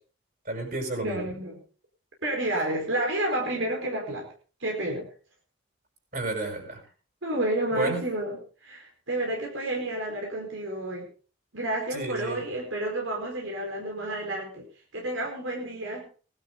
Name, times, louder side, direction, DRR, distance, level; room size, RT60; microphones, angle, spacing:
voice 1, 0.5-1.2 6.1-6.8 7.7-8.0 11.9-12.5, right 2 dB, 50° right, 3 dB, 6.6 m, -31 dB
voice 2, 1.0-1.6 2.2-4.3 4.6-5.1 7.2-11.1 11.5-14.7 14.9-16.1, right 1 dB, 80° right, 0 dB, 4.5 m, -30 dB
20.0 x 12.0 x 3.8 m, 0.38 s
head